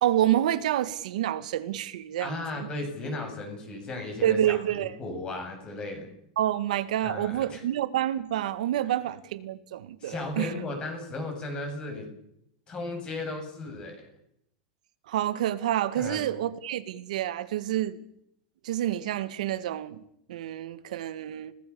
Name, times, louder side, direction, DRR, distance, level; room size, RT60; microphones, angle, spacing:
voice 1, 0.0-2.7 4.2-5.0 6.4-10.5 15.1-18.0 18.6-20.0 20.3-21.5, right 12 dB, 85° right, 2.0 m, -28 dB
voice 2, 2.2-6.1 7.0-7.6 10.0-12.1 12.7-14.0 16.0-16.2, left 2 dB, 20° left, 7.4 m, -35 dB
29.5 x 19.0 x 7.2 m
supercardioid pair, 160°, 4 cm